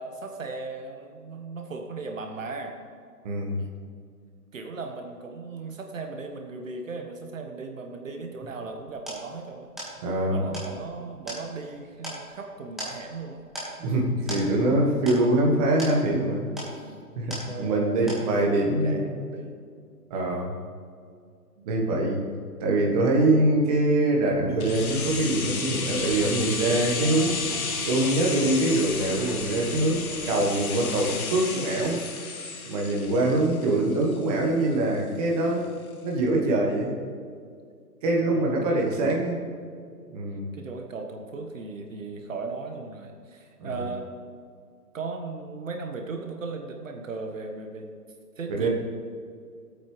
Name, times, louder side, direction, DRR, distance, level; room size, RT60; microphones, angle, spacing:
voice 1, 0.0-2.7 3.6-3.7 4.5-9.7 10.2-13.4 16.8-17.0 17.4-19.5 21.6-21.7 33.1-33.4 38.2-38.8 40.5-44.1 44.9-47.9 48.4-48.7, right 3 dB, 55° right, 3 dB, 1.5 m, -37 dB
voice 2, 3.2-3.6 10.0-10.4 13.8-16.5 17.1-19.1 20.1-20.6 21.6-22.2 22.6-27.4 27.9-32.0 32.6-35.7 36.0-36.9 38.0-39.4 40.1-40.5 43.6-43.8 48.5-48.7, right 2 dB, 25° right, -2 dB, 1.4 m, -24 dB
sound 1, 8.7-17.8 18.1-18.7, right 1 dB, ahead, 1.7 m, -40 dB
sound 2, 24.5-31.1, left 3 dB, 30° left, 0.6 m, -39 dB
sound 3, 24.6-34.4 34.7-34.8, left 4 dB, 60° left, 1.5 m, -33 dB
19.0 x 8.5 x 3.3 m, 2.2 s
figure-of-eight pair, 145°, 47 cm